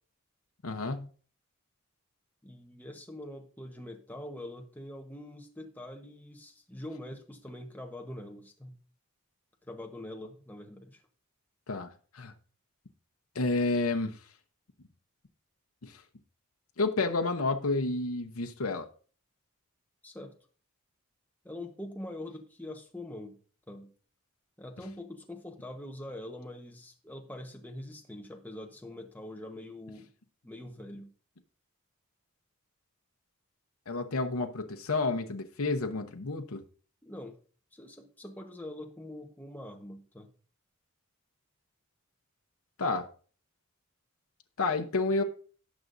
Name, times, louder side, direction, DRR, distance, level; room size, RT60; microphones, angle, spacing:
voice 1, 0.6-1.1 11.7-12.3 13.3-14.2 15.8-16.0 16.8-18.9 33.9-36.6 42.8-43.1 44.6-45.2, left 3 dB, 75° left, 5 dB, 0.8 m, -30 dB
voice 2, 2.4-8.8 9.6-11.0 20.0-20.3 21.4-23.4 23.7-23.9 24.6-30.1 30.4-31.1 37.0-37.4 37.7-40.3, left 1 dB, 10° left, 2 dB, 1.1 m, -44 dB
17.5 x 6.0 x 2.6 m, 0.41 s
head